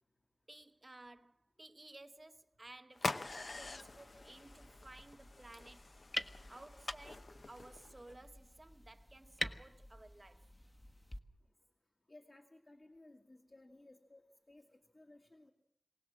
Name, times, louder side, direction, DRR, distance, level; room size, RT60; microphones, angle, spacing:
voice 1, 0.5-5.9 6.5-10.5, right 2 dB, 30° right, 1.1 m, -56 dB
sound 1, 2.9-8.1, left 3 dB, 60° left, 0.9 m, -45 dB
sound 2, 3.2-11.2, left 1 dB, 20° left, 1.2 m, -48 dB
voice 2, 12.1-15.5, left 2 dB, 45° left, 2.1 m, -60 dB
24.0 x 18.0 x 7.6 m
wide cardioid pair, 80°, 0 cm